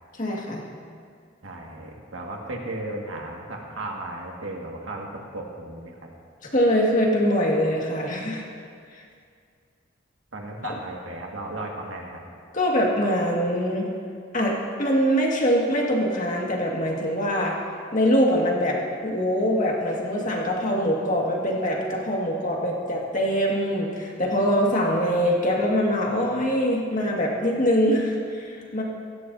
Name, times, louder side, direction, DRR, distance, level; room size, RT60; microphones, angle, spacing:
voice 1, 0.2-0.6 6.5-8.4 8.9-9.0 10.6-10.7 12.5-13.9 14.3-17.6 17.9-28.8, equal, 40° left, -2 dB, 1.9 m, -23 dB
voice 2, 1.4-6.1 10.3-12.2, right 2 dB, 85° right, 0 dB, 1.8 m, -35 dB
17.0 x 14.0 x 2.7 m, 2.2 s
head